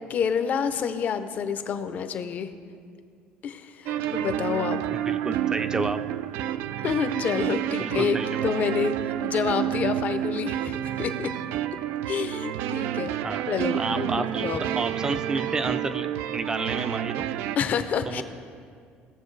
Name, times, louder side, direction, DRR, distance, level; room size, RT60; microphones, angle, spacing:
voice 1, 0.1-2.5 3.4-4.8 6.8-8.2 8.4-8.9 9.2-11.3 12.1-13.1 13.5-14.6 17.6-18.2, left 7 dB, 45° left, 9 dB, 0.6 m, -28 dB
sound 1, 3.9-17.6, right 11 dB, 75° right, 0.3 m, -29 dB
voice 2, 5.1-6.0 7.8-8.5 13.2-13.4 13.8-16.1 16.3-17.3 18.1-18.2, right 3 dB, 20° right, 10 dB, 0.5 m, -30 dB
18.0 x 7.1 x 3.2 m, 2.2 s
cardioid pair, 135°, 4 cm